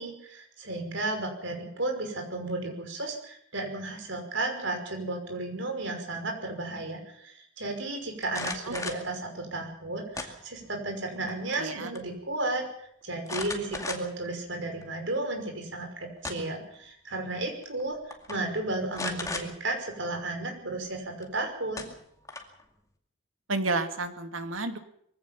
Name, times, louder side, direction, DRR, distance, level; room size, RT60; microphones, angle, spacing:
voice 1, 0.0-18.0 18.3-21.9, right 2 dB, 70° right, 4 dB, 5.8 m, -33 dB
sound 1, 8.2-9.1 10.1-10.8 11.2-11.7 11.9-12.0 13.3-14.3 14.8-14.9 15.9-16.6 17.6-17.8 18.1-18.4 18.9-19.5 21.2-21.3 21.8-22.6, left 3 dB, 15° left, 2.3 m, -36 dB
voice 2, 11.6-11.9 23.5-24.8, right 3 dB, 90° right, 8 dB, 2.3 m, -30 dB
23.0 x 16.5 x 7.2 m, 0.68 s
head